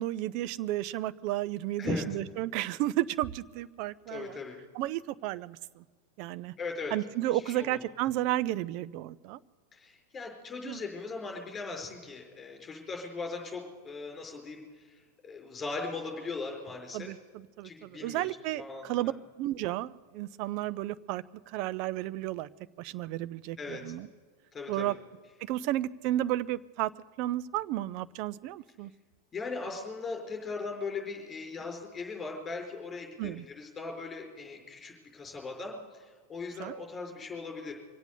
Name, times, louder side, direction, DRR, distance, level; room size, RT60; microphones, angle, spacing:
voice 1, 0.0-4.4 4.7-5.8 6.2-6.5 6.9-9.4 10.6-10.8 16.9-19.1 19.4-22.5 22.8-24.1 24.7-24.9 25.5-26.9 27.2-28.9 33.2-33.5 36.6-36.7, right 14 dB, 45° right, 15 dB, 0.5 m, -33 dB
voice 2, 4.1-4.6 6.6-6.9 7.3-7.8 9.7-14.9 15.2-17.2 17.6-18.3 18.6-19.1 23.6-24.0 24.5-24.9 29.3-37.7, left 4 dB, 20° left, 1 dB, 4.7 m, -39 dB
24.5 x 8.2 x 6.7 m, 1.5 s
figure-of-eight pair, 90°, 0 cm